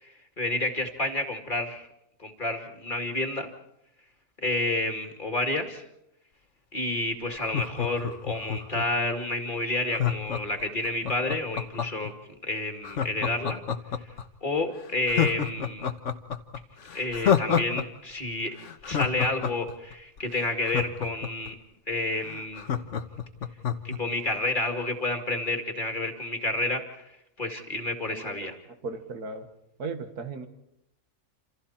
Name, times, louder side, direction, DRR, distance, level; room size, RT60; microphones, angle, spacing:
voice 1, 0.0-1.8 2.2-3.5 4.4-5.8 6.7-12.1 12.4-13.6 14.4-15.9 16.9-18.5 18.8-21.5 21.9-22.7 23.8-27.1 27.4-28.5, left 2 dB, 30° left, 4 dB, 2.5 m, -30 dB
Laughter, 7.4-9.1 9.9-12.1 12.8-14.2 14.6-14.7 15.1-17.8 18.1-18.2 18.6-21.5 21.9-22.0 22.2-24.0 24.4-24.5, left 8 dB, 55° left, 1.4 m, -28 dB
voice 2, 28.7-29.5 29.8-30.5, right 4 dB, 90° right, 7 dB, 2.3 m, -36 dB
28.0 x 28.0 x 4.4 m, 0.81 s
omnidirectional pair, 1.6 m